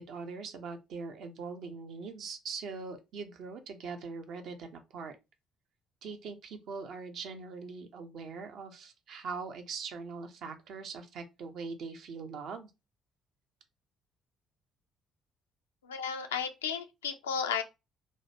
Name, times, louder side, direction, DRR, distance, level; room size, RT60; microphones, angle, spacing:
voice 1, 0.0-5.2 6.0-12.7, right 4 dB, 60° right, 0.5 m, -42 dB
voice 2, 15.8-17.6, left 7 dB, 85° left, 0.3 m, -33 dB
3.0 x 2.1 x 2.8 m
figure-of-eight pair, 45°, 0 cm